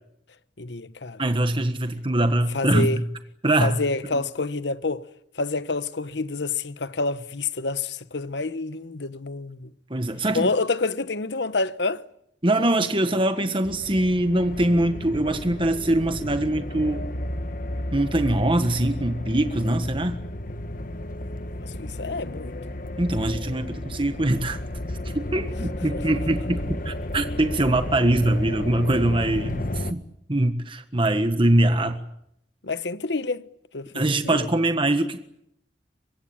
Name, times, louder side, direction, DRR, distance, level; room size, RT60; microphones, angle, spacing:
voice 1, 0.6-1.2 2.5-3.0 3.6-5.0 5.4-9.7 10.3-12.0 21.6-22.6 25.9-26.0 32.6-33.5 33.7-34.5, left 3 dB, 65° left, 1.2 m, -28 dB
voice 2, 1.2-3.0 3.4-3.8 9.9-10.5 12.4-17.1 17.9-20.2 23.0-24.6 25.1-30.0 30.3-32.0 33.9-35.2, right 1 dB, 30° right, 1.5 m, -23 dB
sound 1, 13.6-29.9, left 1 dB, 50° left, 1.3 m, -33 dB
24.5 x 23.5 x 8.9 m
head